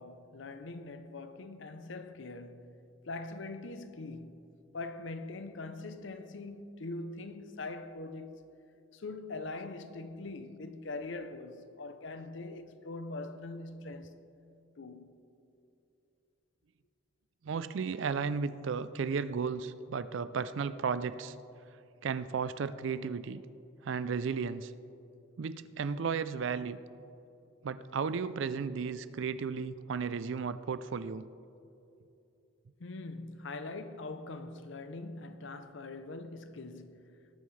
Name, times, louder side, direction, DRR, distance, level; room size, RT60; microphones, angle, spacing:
voice 1, 0.0-2.8 3.1-8.5 8.9-14.2 14.8-15.2 32.8-37.2, left 2 dB, 65° left, 0.6 m, -43 dB
voice 2, 17.4-21.3 22.0-23.4 23.8-24.7 25.4-26.8 27.6-31.2, right 5 dB, 65° right, 0.4 m, -34 dB
18.5 x 9.0 x 3.3 m
head